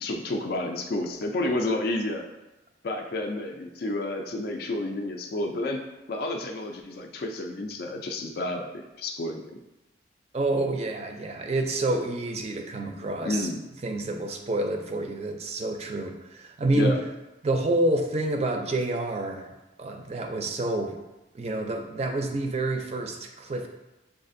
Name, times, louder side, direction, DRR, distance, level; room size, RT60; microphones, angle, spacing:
voice 1, 0.0-2.3 2.8-5.8 6.1-9.4 13.2-13.6 16.7-17.0, left 2 dB, 50° left, 3 dB, 0.3 m, -30 dB
voice 2, 10.3-13.5 13.8-17.0 17.4-19.5 19.8-21.0 21.3-23.7, right 2 dB, 35° right, 4 dB, 0.4 m, -28 dB
6.7 x 2.4 x 2.5 m, 1.0 s
head